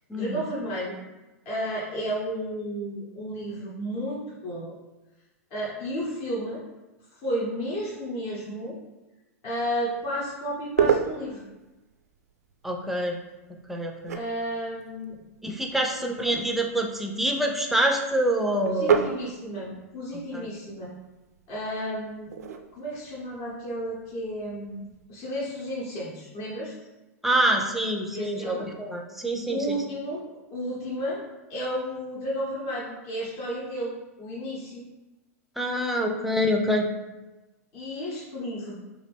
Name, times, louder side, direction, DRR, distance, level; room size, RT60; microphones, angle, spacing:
voice 1, 0.1-1.0 1.4-4.7 5.5-6.6 7.1-8.8 9.4-11.5 14.1-15.1 16.0-16.3 18.7-20.9 21.5-22.3 22.7-26.7 28.1-28.7 29.5-31.2 31.5-34.9 37.7-38.7, equal, 50° left, -6 dB, 0.9 m, -32 dB
sound 1, 9.9-25.0, right 7 dB, 80° right, 0.4 m, -33 dB
voice 2, 12.6-13.2 13.7-14.2 15.4-19.0 20.3-20.5 27.2-29.8 35.6-36.9, right 1 dB, 5° right, 1 dB, 0.4 m, -26 dB
2.9 x 2.5 x 3.3 m, 1.1 s
hypercardioid pair, 105°, 8 cm